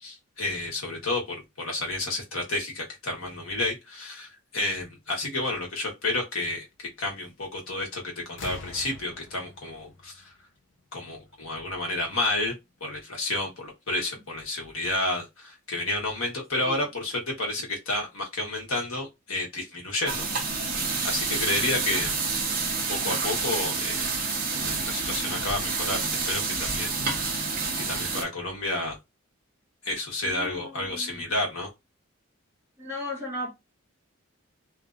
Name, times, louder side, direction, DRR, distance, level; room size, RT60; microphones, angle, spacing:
voice 1, 0.0-10.3 10.9-12.5 12.8-20.7 21.0-22.2 22.9-24.0 24.6-27.5 27.8-29.0 29.8-31.7, left 2 dB, 80° left, 1.3 m, -31 dB
sound 1, 7.7-8.0 8.3-11.0 12.2-12.3, left 3 dB, 60° left, 0.6 m, -44 dB
sound 2, 20.1-28.2, right 4 dB, 40° right, 0.9 m, -28 dB
voice 2, 30.2-31.3 32.8-33.5, left 1 dB, 10° right, 1.3 m, -37 dB
3.1 x 2.7 x 2.5 m
head